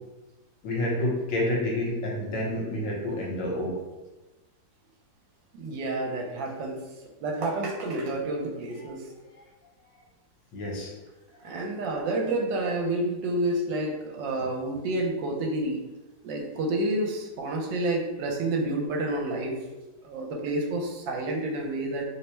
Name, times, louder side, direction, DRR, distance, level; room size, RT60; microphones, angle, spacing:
voice 1, 0.6-3.7 8.8-8.9 9.4-9.5 10.5-10.9, left 1 dB, 75° left, -3 dB, 1.5 m, -29 dB
voice 2, 5.5-6.8 7.2-9.0 11.4-15.8 16.2-19.6 20.0-22.0, right 2 dB, 80° right, 0 dB, 1.3 m, -29 dB
3.3 x 2.0 x 4.2 m, 1.1 s
omnidirectional pair, 2.0 m